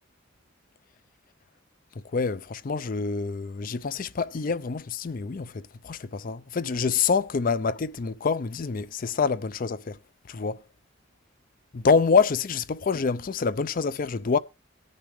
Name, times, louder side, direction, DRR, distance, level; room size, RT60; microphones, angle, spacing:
voice 1, 2.1-10.0 10.3-10.6 11.7-14.4, left 5 dB, 45° left, 0.5 m, -26 dB
19.5 x 6.7 x 3.1 m
head